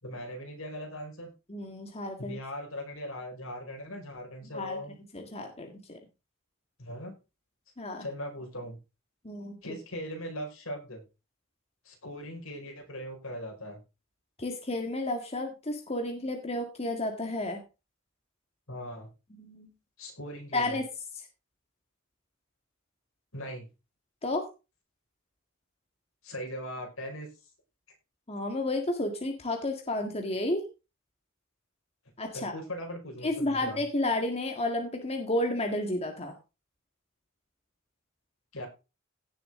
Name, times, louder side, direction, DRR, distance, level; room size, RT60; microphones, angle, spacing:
voice 1, 0.0-1.3 2.2-5.0 6.8-7.2 8.0-8.8 9.6-11.0 11.8-13.8 18.7-19.1 20.0-20.8 23.3-23.7 26.2-27.3 32.3-33.8 38.5-38.7, equal, 75° left, 2 dB, 5.3 m, -39 dB
voice 2, 1.5-2.3 4.5-4.8 5.1-6.0 7.8-8.0 9.2-9.6 14.4-17.6 19.3-19.7 20.5-20.8 24.2-24.4 28.3-30.6 32.2-32.5 33.2-36.3, left 1 dB, 30° left, 3 dB, 1.9 m, -31 dB
17.0 x 7.0 x 3.8 m, 0.29 s
head